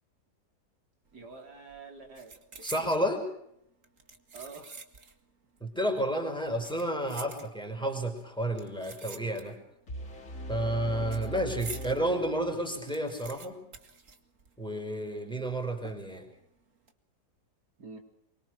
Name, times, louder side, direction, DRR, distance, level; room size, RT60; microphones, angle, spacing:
sound 1, 1.1-1.4 1.7-3.1 3.8-5.2 5.5-5.6 6.4-7.9 8.5-9.8 10.0-12.0 12.4-12.5 12.7-14.8 15.1-15.2 15.8-16.3 16.7-16.9, right 4 dB, 50° right, 2.4 m, -47 dB
voice 1, 1.1-2.9 4.3-4.8 10.9-11.1 17.8-18.0, right 4 dB, 80° right, 3 dB, 4.4 m, -47 dB
voice 2, 2.6-3.2 5.6-9.6 10.5-13.6 14.6-16.3, right 1 dB, 5° left, 4 dB, 5.4 m, -31 dB
sound 2, 9.9-12.9, right 1 dB, 50° left, 3.0 m, -40 dB
25.0 x 23.5 x 6.5 m, 0.76 s
omnidirectional pair, 1.7 m